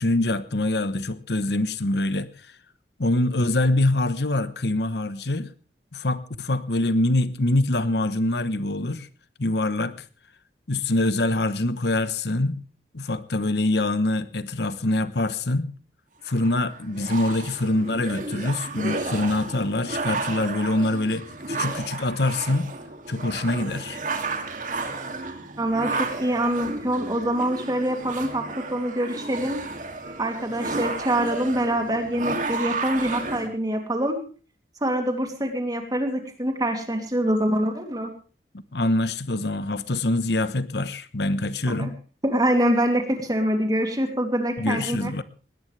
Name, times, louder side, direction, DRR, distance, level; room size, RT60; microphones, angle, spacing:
voice 1, 0.0-2.3 3.0-5.5 5.9-9.1 9.4-9.9 10.7-12.6 12.9-15.7 16.2-22.7 23.1-24.0 38.7-41.9 44.6-45.2, left 2 dB, 70° left, 1.1 m, -24 dB
sound 1, 16.3-33.5, right 3 dB, 45° right, 2.6 m, -32 dB
voice 2, 25.6-29.6 30.2-34.2 34.8-38.1 41.7-41.9 42.2-45.1, right 1 dB, 20° right, 2.9 m, -25 dB
20.5 x 18.5 x 3.4 m
head